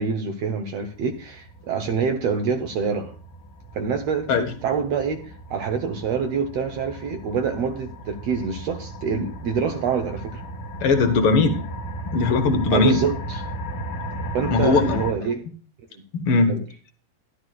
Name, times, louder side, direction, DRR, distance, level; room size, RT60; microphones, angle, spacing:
voice 1, 0.0-3.1 3.7-4.4 4.6-10.4 12.7-13.4 14.3-15.4 16.5-16.6, right 6 dB, 70° right, 1.5 m, -26 dB
sound 1, 0.7-15.1, right 1 dB, 45° left, 1.5 m, -35 dB
voice 2, 10.8-11.6 12.1-13.1 14.5-15.0 16.1-16.6, left 4 dB, 65° left, 1.4 m, -19 dB
12.5 x 12.5 x 2.4 m
omnidirectional pair, 4.0 m